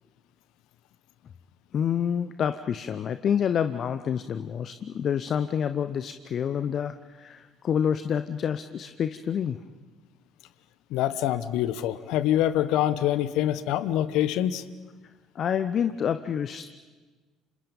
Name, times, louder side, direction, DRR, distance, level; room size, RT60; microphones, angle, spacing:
voice 1, 1.7-9.6 15.3-16.7, left 8 dB, 50° left, 11 dB, 0.8 m, -28 dB
voice 2, 10.9-14.6, left 12 dB, 65° left, 14 dB, 1.1 m, -25 dB
30.0 x 27.0 x 5.4 m, 1.4 s
hypercardioid pair, 55°, 0 cm